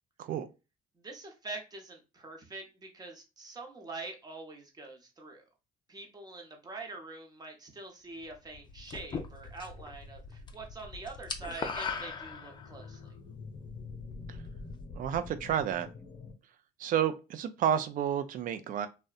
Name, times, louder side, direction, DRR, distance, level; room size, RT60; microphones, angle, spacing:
voice 1, 1.0-5.4 5.9-13.1, right 3 dB, 25° right, 0.8 m, -45 dB
sound 1, 8.2-16.3, left 3 dB, 45° left, 0.8 m, -47 dB
sound 2, 8.9-9.9 10.2-10.5 10.8-12.9, left 5 dB, 25° left, 0.4 m, -37 dB
voice 2, 14.9-15.9 16.8-18.9, right 9 dB, 55° right, 0.4 m, -30 dB
2.7 x 2.1 x 2.3 m
cardioid pair, 110°, 17 cm